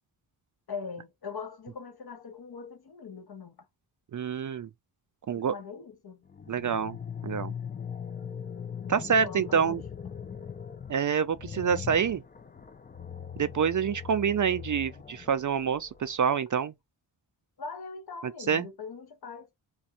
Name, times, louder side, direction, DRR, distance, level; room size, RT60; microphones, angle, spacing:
voice 1, 0.7-3.6 5.3-6.2 8.8-9.8 17.6-19.5, left 5 dB, 50° left, 1.1 m, -41 dB
voice 2, 4.1-4.7 5.3-5.5 6.5-7.0 7.2-7.5 8.9-9.8 10.9-12.2 13.4-16.7 18.2-18.7, right 7 dB, 40° right, 0.5 m, -27 dB
sound 1, 6.2-16.2, left 7 dB, 20° left, 0.4 m, -40 dB
2.5 x 2.4 x 4.1 m
cardioid pair, 50°, 48 cm